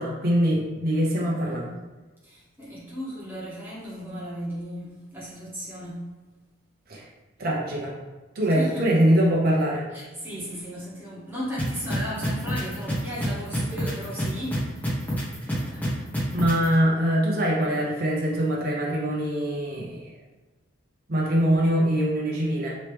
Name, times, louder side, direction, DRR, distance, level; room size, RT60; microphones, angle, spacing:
voice 1, 0.0-1.6 6.9-7.0 7.4-7.9 8.3-9.9 16.3-20.1 21.1-22.8, equal, 45° right, -3 dB, 0.6 m, -23 dB
voice 2, 1.2-1.8 2.2-6.0 8.4-8.9 9.9-15.2 15.4-16.1, equal, 10° right, -8 dB, 1.0 m, -36 dB
sound 1, 11.6-16.7, equal, 10° left, 0.8 m, -27 dB
3.0 x 2.8 x 3.3 m, 1.2 s
head